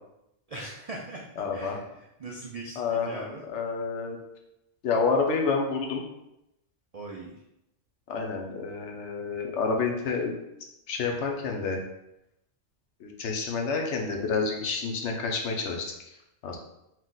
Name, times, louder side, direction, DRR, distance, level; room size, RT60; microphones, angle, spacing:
voice 1, 0.5-1.2 1.5-3.4 6.9-7.3, right 2 dB, 80° right, -1 dB, 0.3 m, -40 dB
voice 2, 1.4-1.8 2.8-4.2 4.8-6.0 8.1-10.3 10.9-11.8 13.0-15.9 16.4-16.6, left 4 dB, 70° left, 2 dB, 0.9 m, -29 dB
4.5 x 2.4 x 3.8 m, 0.85 s
omnidirectional pair, 1.3 m